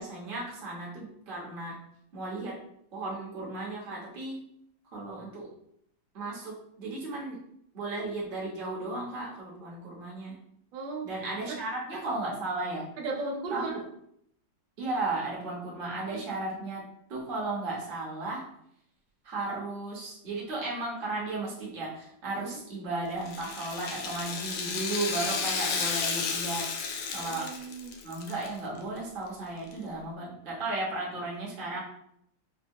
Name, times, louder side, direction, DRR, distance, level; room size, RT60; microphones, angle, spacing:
voice 1, 0.0-1.8 2.1-2.6 2.9-4.4 4.9-5.5 6.1-7.4 7.7-10.4 11.0-12.9 13.5-13.8 14.8-16.8 17.1-18.5 19.2-26.7 27.1-27.5 28.0-31.8, right 2 dB, 35° right, -6 dB, 1.0 m, -35 dB
voice 2, 10.7-11.1 11.5-11.6 13.0-13.8 16.1-16.2 22.4-22.6 27.2-28.0, right 3 dB, 85° right, 1 dB, 1.4 m, -36 dB
Rattle (instrument), 23.2-28.5 28.8-28.9 29.7-29.8, left 5 dB, 75° left, 1.1 m, -33 dB
4.5 x 2.2 x 2.6 m, 0.72 s
omnidirectional pair, 2.0 m